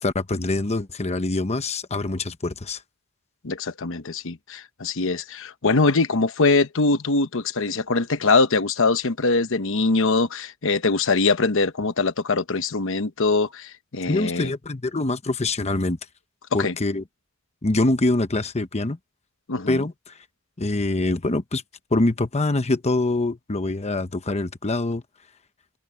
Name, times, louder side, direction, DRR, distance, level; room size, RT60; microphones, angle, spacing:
voice 1, 0.0-2.8 14.1-16.0 16.5-17.0 17.6-19.0 19.7-20.2 20.6-21.6 21.9-25.0, left 2 dB, 30° left, 1.0 m, -24 dB
voice 2, 3.4-14.5 16.6-16.7 19.5-19.8, left 3 dB, 65° left, 1.0 m, -22 dB
head